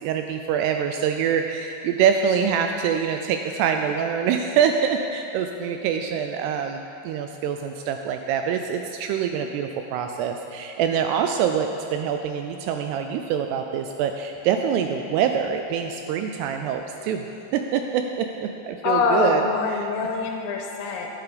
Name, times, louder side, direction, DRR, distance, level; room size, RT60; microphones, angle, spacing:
voice 1, 0.0-17.3 17.5-19.4 19.7-19.9, right 7 dB, 85° right, 5 dB, 2.3 m, -25 dB
voice 2, 18.8-21.1, left 4 dB, 90° left, 1 dB, 3.0 m, -24 dB
10.5 x 10.5 x 5.0 m, 2.7 s
omnidirectional pair, 5.2 m